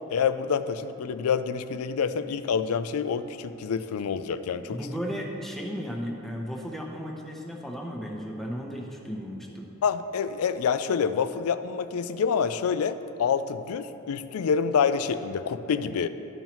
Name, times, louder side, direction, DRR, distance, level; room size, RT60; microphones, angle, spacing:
voice 1, 0.1-4.8 9.8-16.1, left 6 dB, 90° left, 12 dB, 0.4 m, -27 dB
voice 2, 4.7-9.7, equal, ahead, -1 dB, 0.8 m, -35 dB
13.0 x 5.5 x 3.0 m, 3.0 s
head